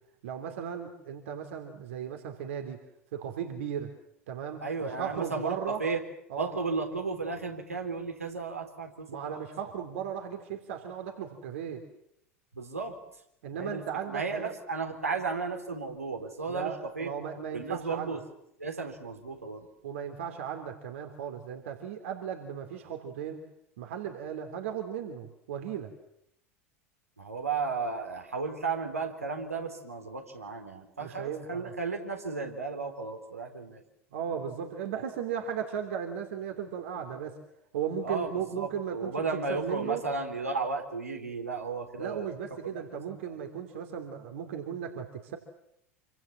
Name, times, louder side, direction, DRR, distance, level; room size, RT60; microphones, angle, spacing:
voice 1, 0.2-2.8 3.1-3.9 4.3-5.8 6.3-6.5 9.1-11.8 13.4-14.5 16.5-18.1 19.8-23.4 23.8-25.9 31.0-31.7 34.1-37.4 37.7-39.1 39.5-40.0 42.0-45.4, right 8 dB, 60° right, 5 dB, 3.0 m, -36 dB
voice 2, 4.6-6.0 6.4-9.4 12.5-13.0 13.5-17.1 17.5-18.2 18.6-19.7 27.2-33.8 38.0-42.3 42.6-43.4, right 4 dB, 80° right, 3 dB, 3.9 m, -34 dB
27.5 x 25.0 x 7.5 m, 0.77 s
figure-of-eight pair, 80°, 8 cm